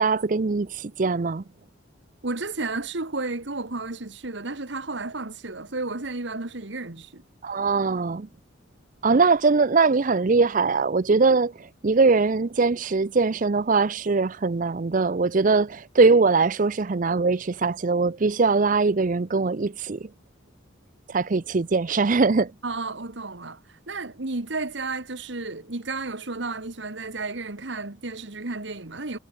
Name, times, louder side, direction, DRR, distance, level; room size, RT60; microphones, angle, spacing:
voice 1, 0.0-1.4 7.4-8.3 9.0-20.1 21.1-22.5, right 4 dB, 40° right, 0.5 m, -21 dB
voice 2, 2.2-7.2 22.6-23.6 23.9-29.2, right 3 dB, 60° right, 1.6 m, -32 dB
head